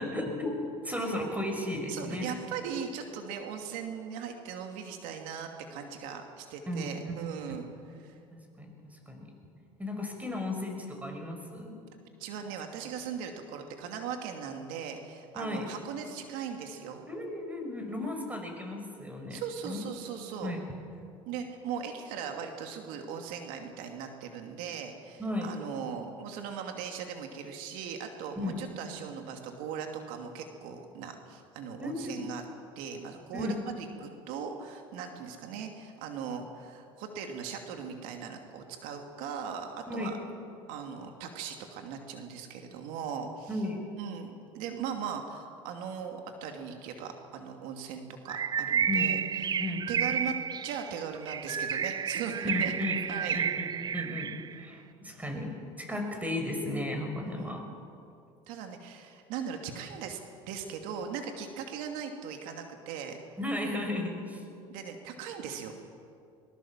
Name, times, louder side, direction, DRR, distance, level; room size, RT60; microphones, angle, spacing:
voice 1, 0.0-2.3 6.7-7.2 7.5-7.6 8.3-8.7 9.1-9.3 9.8-11.8 15.3-15.7 17.1-19.8 20.4-20.6 25.2-25.5 28.4-28.6 31.8-32.2 33.3-33.6 39.9-40.1 43.5-43.8 48.9-49.1 49.6-50.1 52.4-57.6 63.4-64.4, left 1 dB, 10° right, 3 dB, 5.7 m, -35 dB
voice 2, 1.9-7.6 8.0-8.2 12.2-17.0 19.3-20.5 21.3-32.4 32.8-40.1 40.7-43.6 44.0-49.2 49.5-49.6 49.9-50.3 50.6-52.7 53.1-53.4 57.2-57.6 58.5-60.2 60.5-63.2 64.7-65.8, right 7 dB, 70° right, 4 dB, 2.5 m, -39 dB
Bird, 48.3-54.6, right 7 dB, 30° right, 0.5 m, -31 dB
21.5 x 21.0 x 7.4 m, 2.5 s
supercardioid pair, 95°, 14 cm